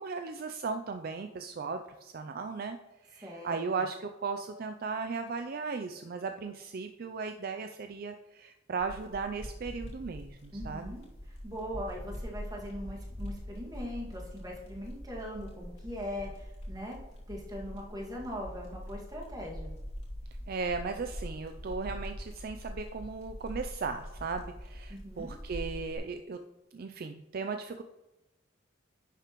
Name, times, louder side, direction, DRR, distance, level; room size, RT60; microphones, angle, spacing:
voice 1, 0.0-2.8 3.0-10.9 20.5-26.4 26.7-27.8, right 4 dB, 50° right, 7 dB, 0.4 m, -36 dB
voice 2, 3.2-3.6 10.5-17.0 17.3-19.7 24.9-25.3, equal, 20° right, -3 dB, 2.0 m, -41 dB
sound 1, 8.8-26.0, equal, 35° left, 2.4 m, -43 dB
10.5 x 6.7 x 3.1 m, 0.99 s
head